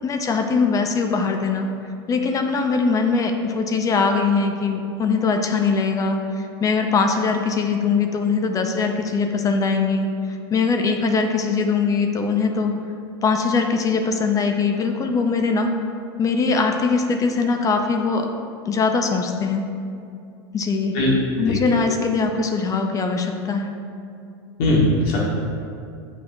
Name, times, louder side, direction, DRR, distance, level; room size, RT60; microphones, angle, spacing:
voice 1, 0.0-1.7 2.1-12.7 13.2-15.7 16.2-18.3 18.7-19.7 20.5-21.0 21.4-23.8, left 4 dB, 25° left, 5 dB, 0.5 m, -21 dB
voice 2, 21.4-21.9 24.6-25.2, left 1 dB, 60° left, -5 dB, 1.4 m, -20 dB
7.6 x 5.4 x 2.6 m, 2.4 s
hypercardioid pair, 115°, 14 cm